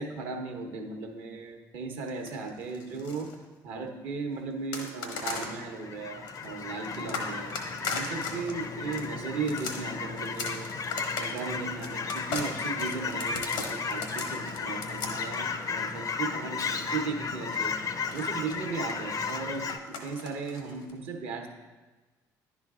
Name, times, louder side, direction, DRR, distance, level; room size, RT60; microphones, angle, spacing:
voice 1, 0.0-3.3 3.6-7.5 7.9-10.7 11.2-17.7 18.1-21.5, right 4 dB, 70° right, 3 dB, 0.9 m, -36 dB
sound 1, 2.1-3.4 4.7-5.6 6.3-16.8 17.9-20.9, left 4 dB, 80° left, 0.9 m, -38 dB
Fowl / Chirp tweet, 5.0-19.8, left 5 dB, 40° left, 0.5 m, -34 dB
10.5 x 4.3 x 2.4 m, 1.3 s
hypercardioid pair, 50°, 10 cm